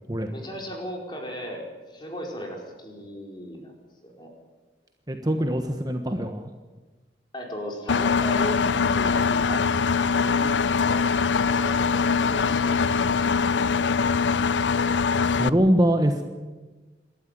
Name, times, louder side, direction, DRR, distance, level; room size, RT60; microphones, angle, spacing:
voice 1, 0.3-3.7 4.0-4.3 7.3-9.7 10.2-13.6, equal, 25° left, 0 dB, 4.8 m, -37 dB
voice 2, 5.1-6.5 15.3-16.2, equal, 20° right, 5 dB, 1.3 m, -23 dB
Engine, 7.9-15.5, left 5 dB, 90° left, 0.6 m, -22 dB
28.0 x 12.5 x 9.3 m, 1.2 s
head